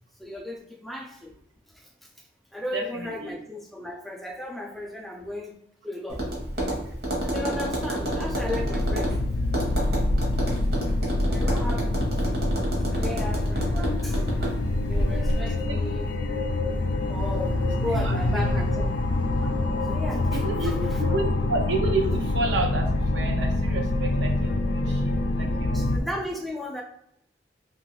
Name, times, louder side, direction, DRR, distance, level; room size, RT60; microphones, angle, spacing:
voice 1, 0.2-1.3 1.7-2.1 2.5-5.6 5.8-6.3 7.2-9.2 11.2-12.0 12.8-14.3 14.9-16.2 17.1-18.9 19.9-21.2 25.7-26.8, left 1 dB, ahead, 0 dB, 0.3 m, -36 dB
voice 2, 2.7-3.4 15.7-15.8 17.9-18.5 20.3-26.1, right 2 dB, 85° right, 2 dB, 0.6 m, -31 dB
Tap, 6.1-15.4, right 1 dB, 60° right, 0.9 m, -29 dB
sound 1, 7.8-26.0, left 2 dB, 80° left, 0.4 m, -26 dB
2.9 x 2.3 x 3.1 m, 0.74 s
head